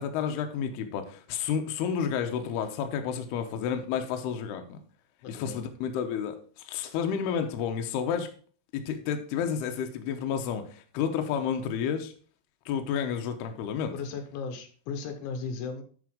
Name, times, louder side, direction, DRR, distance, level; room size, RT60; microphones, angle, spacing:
voice 1, 0.0-4.8 5.3-8.3 8.7-12.1 12.7-14.0, left 7 dB, 75° left, 6 dB, 2.7 m, -31 dB
voice 2, 5.2-5.6 13.9-15.8, left 5 dB, 90° left, 7 dB, 3.6 m, -36 dB
9.6 x 5.0 x 4.9 m, 0.43 s
omnidirectional pair, 5.2 m